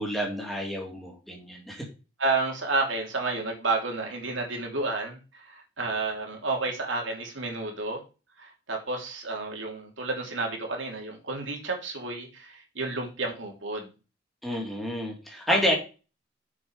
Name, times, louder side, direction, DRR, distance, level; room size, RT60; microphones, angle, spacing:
voice 1, 0.0-1.8 14.4-15.7, equal, ahead, -1 dB, 2.4 m, -29 dB
voice 2, 2.2-8.0 8.4-13.9 15.5-15.6, right 3 dB, 85° right, 1 dB, 2.9 m, -31 dB
7.1 x 6.0 x 5.1 m, 0.32 s
head